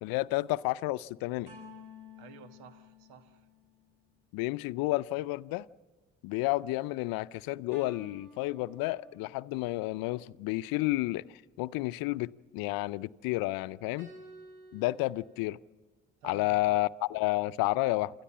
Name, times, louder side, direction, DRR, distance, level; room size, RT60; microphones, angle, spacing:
voice 1, 0.0-1.5 4.3-5.7 6.2-11.2 11.6-14.1 14.7-15.6 16.2-18.1, left 19 dB, 70° left, 0.6 m, -31 dB
sound 1, 1.4-4.0 7.7-9.5 14.0-15.4, left 2 dB, 65° right, 7.9 m, -52 dB
voice 2, 2.2-3.4 16.2-16.9 17.8-18.0, right 7 dB, 80° right, 1.5 m, -51 dB
28.0 x 13.0 x 7.2 m
hypercardioid pair, 50°, 36 cm